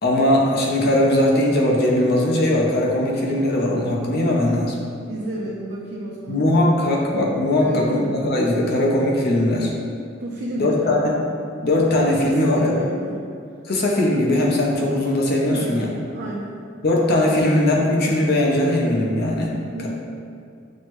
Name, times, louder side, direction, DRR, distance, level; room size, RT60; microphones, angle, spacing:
voice 1, 0.0-4.7 6.3-9.7 10.6-11.2 11.6-12.8 13.7-15.9 16.8-19.5, left 1 dB, 55° left, -2 dB, 0.6 m, -19 dB
voice 2, 5.1-6.8 7.6-8.1 10.2-11.0 12.2-13.2 15.5-16.6 19.7-19.9, right 1 dB, 55° right, -4 dB, 0.4 m, -31 dB
6.2 x 2.1 x 3.1 m, 2.3 s
head